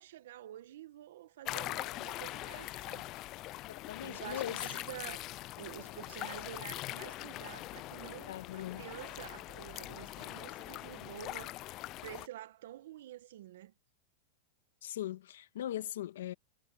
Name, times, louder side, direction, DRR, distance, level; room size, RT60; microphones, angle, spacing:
voice 1, 0.0-3.1 4.0-5.3 5.6-11.7 12.0-13.7, right 13 dB, 70° right, 1.3 m, -48 dB
sound 1, 1.4-12.3, left 17 dB, 30° left, 0.3 m, -42 dB
voice 2, 3.7-4.7 8.3-8.9 14.8-16.3, left 12 dB, 80° left, 1.6 m, -40 dB
supercardioid pair, 160°, 0 cm